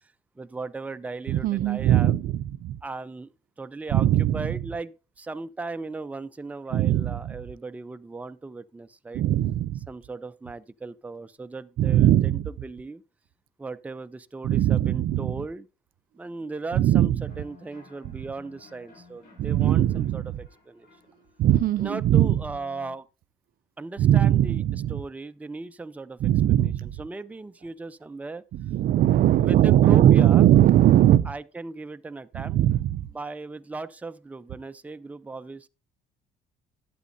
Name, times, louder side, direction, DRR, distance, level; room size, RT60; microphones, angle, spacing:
voice 1, 0.0-2.1 2.8-3.3 3.6-9.2 9.9-13.0 13.6-15.7 16.1-20.9 21.8-23.1 23.8-24.6 24.9-26.2 26.5-28.4 29.4-30.5 31.3-32.6 33.1-35.7, right 3 dB, 10° right, 0.5 m, -37 dB
voice 2, 1.3-2.8 3.9-4.5 6.7-7.3 9.1-9.9 11.8-12.5 14.4-15.3 16.7-17.2 19.4-20.2 21.4-22.4 24.0-25.0 26.2-26.9 28.5-31.3 32.3-33.1, right 12 dB, 60° right, 0.4 m, -20 dB
sound 1, 17.2-23.0, left 3 dB, 70° left, 5.4 m, -54 dB
11.5 x 8.5 x 2.6 m
cardioid pair, 110°, 17 cm